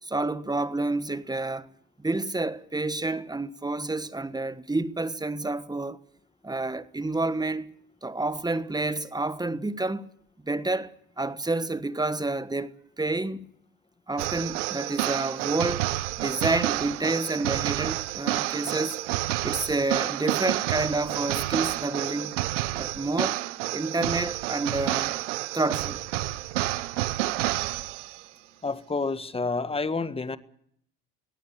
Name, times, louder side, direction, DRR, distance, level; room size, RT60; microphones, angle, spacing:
voice 1, 0.0-1.7 2.0-6.0 6.4-7.7 8.0-10.1 10.4-13.5 14.1-15.9 16.2-19.0 19.4-22.4 22.8-23.4 23.7-25.2 25.5-26.0, right 2 dB, 10° right, 1.4 m, -29 dB
sound 1, 14.2-28.2, right 17 dB, 85° right, 1.0 m, -29 dB
voice 2, 28.6-30.4, left 3 dB, 15° left, 1.6 m, -29 dB
23.0 x 17.0 x 8.6 m
hypercardioid pair, 75°, 35 cm